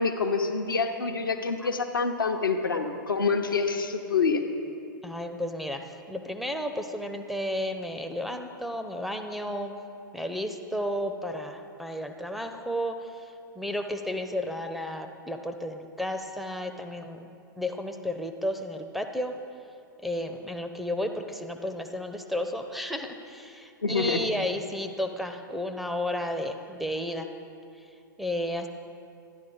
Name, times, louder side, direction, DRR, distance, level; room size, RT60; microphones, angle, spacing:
voice 1, 0.0-4.4 23.8-24.3, left 4 dB, 80° left, 4 dB, 0.8 m, -26 dB
voice 2, 5.0-9.7 10.1-17.3 17.6-19.4 20.0-27.3 28.2-28.7, left 1 dB, ahead, 4 dB, 0.5 m, -33 dB
12.0 x 10.5 x 3.8 m, 2.6 s
figure-of-eight pair, 100°, 11 cm